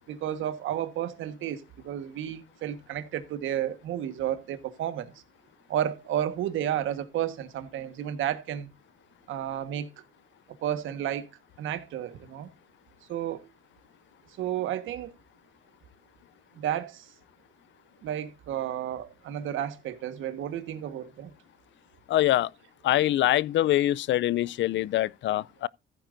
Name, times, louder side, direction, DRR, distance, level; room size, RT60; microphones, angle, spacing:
voice 1, 0.1-5.1 5.7-8.7 9.3-10.0 10.6-12.5 13.1-13.5 14.4-15.1 16.5-17.1 18.0-21.3, right 11 dB, 85° right, 1.4 m, -32 dB
voice 2, 22.1-22.5 22.8-25.7, left 14 dB, 70° left, 0.4 m, -24 dB
14.5 x 9.0 x 2.6 m
cardioid pair, 90°, 20 cm